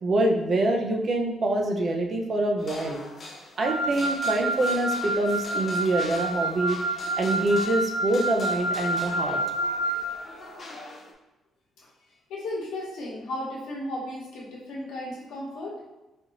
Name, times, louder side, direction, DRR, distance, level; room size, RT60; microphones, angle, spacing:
voice 1, 0.0-3.0 3.6-9.4, right 1 dB, 45° right, 2 dB, 0.6 m, -25 dB
sound 1, 2.6-11.1, left 2 dB, 45° left, 0.7 m, -43 dB
Wind instrument woodwind instrument, 3.6-10.1, right 2 dB, 85° right, 1.4 m, -29 dB
voice 2, 12.3-15.8, left 1 dB, 85° left, -3 dB, 1.0 m, -35 dB
4.2 x 2.6 x 2.9 m, 1.1 s
cardioid pair, 90°, 0 cm